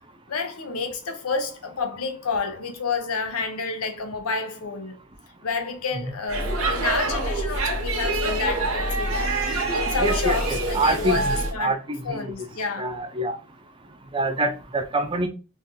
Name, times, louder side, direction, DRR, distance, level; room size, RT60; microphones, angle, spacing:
voice 1, 0.3-5.0 5.4-11.7 12.0-12.9, left 4 dB, 85° left, 0.7 m, -30 dB
Speech / Shout / Subway metro underground, 6.3-11.5, right 2 dB, 75° right, 0.8 m, -25 dB
voice 2, 10.0-12.3 12.8-13.4 14.1-15.3, right 1 dB, 25° right, 0.4 m, -26 dB
2.6 x 2.6 x 3.7 m
head